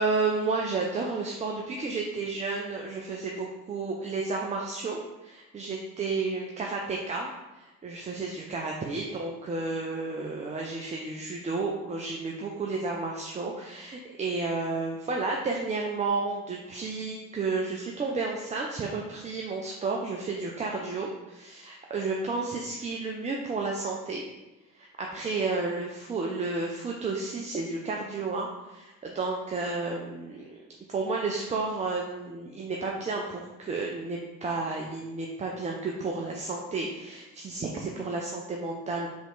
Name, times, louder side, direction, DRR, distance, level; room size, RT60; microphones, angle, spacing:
voice 1, 0.0-24.2 24.8-30.6 30.9-39.1, right 3 dB, 20° right, 0 dB, 0.4 m, -32 dB
3.4 x 2.9 x 3.8 m, 1.1 s
figure-of-eight pair, 40°, 41 cm